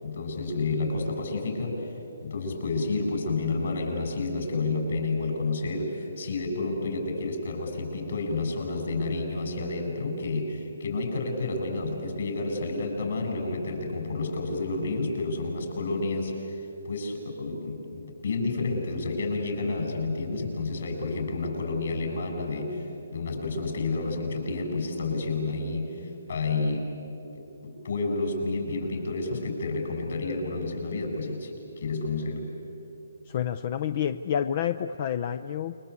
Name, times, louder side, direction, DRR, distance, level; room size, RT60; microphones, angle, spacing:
voice 1, 0.0-1.9 2.2-22.9 23.1-26.9 27.3-31.5 31.8-32.5, left 3 dB, 65° left, 2 dB, 7.1 m, -30 dB
voice 2, 33.3-35.8, left 9 dB, 40° left, 11 dB, 0.6 m, -29 dB
28.5 x 23.0 x 8.4 m, 3.0 s
hypercardioid pair, 155°, 0 cm